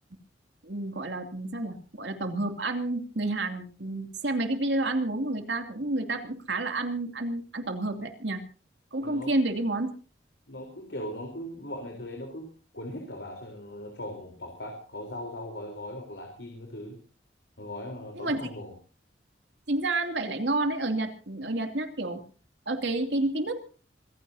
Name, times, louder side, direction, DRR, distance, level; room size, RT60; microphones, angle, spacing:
voice 1, 0.6-8.4 8.9-9.9 18.1-18.4 19.7-22.2 22.7-23.5, right 2 dB, 90° right, 6 dB, 2.8 m, -29 dB
voice 2, 9.0-9.3 10.5-17.0 17.6-18.7, left 1 dB, 85° left, 2 dB, 4.0 m, -39 dB
26.5 x 15.5 x 2.8 m, 0.37 s
head